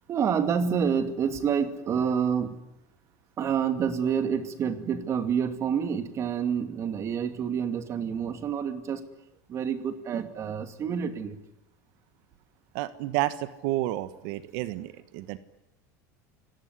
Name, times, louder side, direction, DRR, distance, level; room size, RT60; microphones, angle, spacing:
voice 1, 0.1-2.6 3.4-9.0 9.5-11.4, right 7 dB, 30° right, 9 dB, 2.5 m, -28 dB
voice 2, 12.7-15.4, right 16 dB, 60° right, 13 dB, 1.4 m, -30 dB
29.5 x 17.5 x 9.7 m, 0.86 s
supercardioid pair, 140°, 9 cm